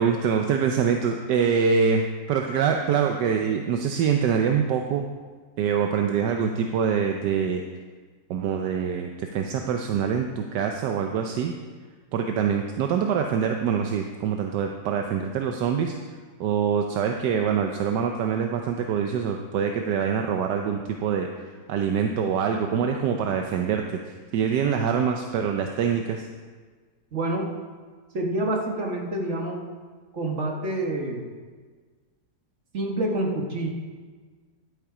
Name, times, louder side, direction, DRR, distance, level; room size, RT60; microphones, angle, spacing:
voice 1, 0.0-5.1 5.6-7.6 8.3-11.5 12.1-15.9 16.4-21.3 21.7-26.3, right 7 dB, 80° right, 4 dB, 1.3 m, -25 dB
voice 2, 27.1-27.5 28.1-29.6 30.1-31.2 32.7-33.7, right 1 dB, 45° right, 1 dB, 1.6 m, -27 dB
11.5 x 8.1 x 4.9 m, 1.5 s
omnidirectional pair, 1.8 m